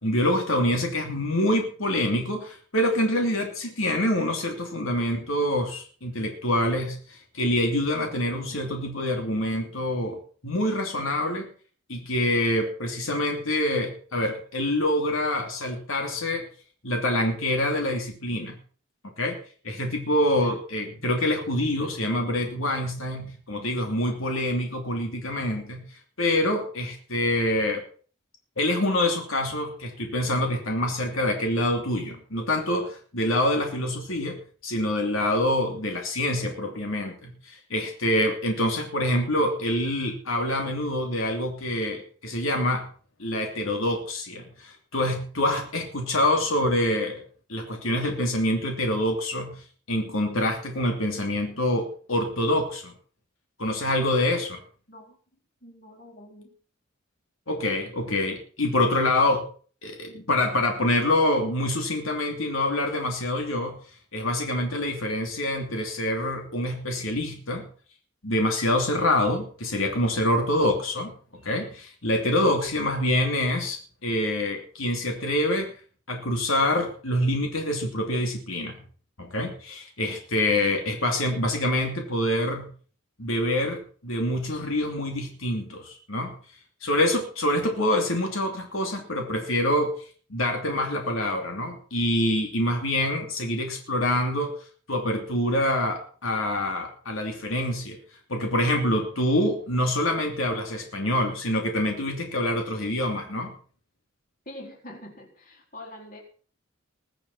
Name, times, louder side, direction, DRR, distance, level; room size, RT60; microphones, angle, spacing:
voice 1, 0.0-11.5 11.9-16.5 16.8-18.5 19.2-19.4 19.6-25.8 26.2-27.8 28.6-42.9 43.2-47.2 47.5-49.5 49.9-52.9 53.6-54.6 57.5-59.4 59.8-63.7 64.1-67.7 68.2-71.1 71.4-75.7 76.1-78.8 79.2-82.7 83.2-86.3 86.8-89.9 90.3-94.5 94.9-98.0 98.3-103.5, left 1 dB, 85° left, 3 dB, 2.9 m, -26 dB
voice 2, 55.6-56.5 104.5-106.2, left 1 dB, 40° left, 1 dB, 3.9 m, -44 dB
21.0 x 7.1 x 5.9 m, 0.43 s
head